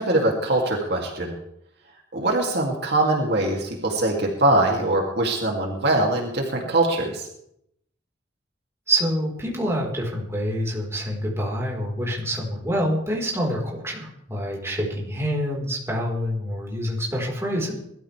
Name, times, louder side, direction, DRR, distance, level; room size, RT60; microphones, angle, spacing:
voice 1, 0.0-1.3 2.1-7.2, right 2 dB, 60° right, 0 dB, 2.8 m, -22 dB
voice 2, 8.9-17.8, equal, 15° right, -3 dB, 4.5 m, -26 dB
22.5 x 13.5 x 3.5 m, 0.75 s
head